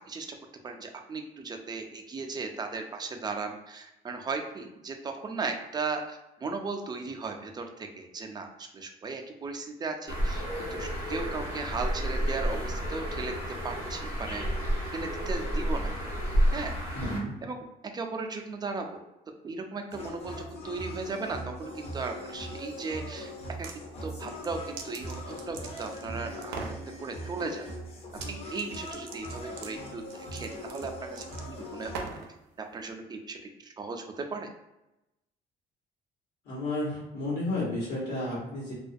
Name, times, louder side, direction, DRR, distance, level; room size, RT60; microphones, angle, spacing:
voice 1, 0.1-0.4 0.6-10.4 10.7-13.3 13.6-14.4 14.9-15.9 16.5-16.7 17.4-17.6 17.9-19.0 19.4-23.3 23.6-23.7 24.0-26.6 27.0-27.7 28.3-31.9 32.7-33.4 33.8-34.5, right 4 dB, 25° right, 4 dB, 0.3 m, -36 dB
Bird, 10.1-17.2, equal, 65° left, 1.3 m, -30 dB
voice 2, 16.9-17.3 36.4-38.7, left 1 dB, 80° left, -8 dB, 1.1 m, -32 dB
sound 1, 19.9-32.1, equal, 35° left, 0.6 m, -41 dB
sound 2, 23.4-23.8 24.2-26.1 26.4-26.8 28.1-28.3 28.6-32.3, right 4 dB, 85° right, 0.5 m, -41 dB
2.3 x 2.1 x 2.6 m, 0.92 s
cardioid pair, 110°, 17 cm